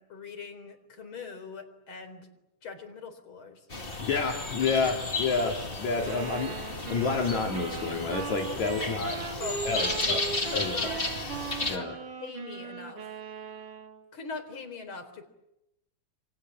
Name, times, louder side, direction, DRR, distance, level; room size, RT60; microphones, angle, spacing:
voice 1, 0.0-2.3 2.6-3.6 4.8-4.9 8.6-10.1 10.5-11.0 11.6-11.9 12.2-13.1 14.1-15.2, left 4 dB, 40° left, 6 dB, 4.8 m, -42 dB
sound 1, 3.7-11.8, left 2 dB, 20° left, 2.0 m, -33 dB
voice 2, 4.0-6.5 6.9-9.2 9.6-10.2 10.5-10.7 11.7-12.0, left 4 dB, 65° left, 1 dB, 4.0 m, -29 dB
sound 2, 6.0-14.0, right 6 dB, 85° right, 4.3 m, -39 dB
29.0 x 26.5 x 7.7 m, 0.87 s
omnidirectional pair, 3.6 m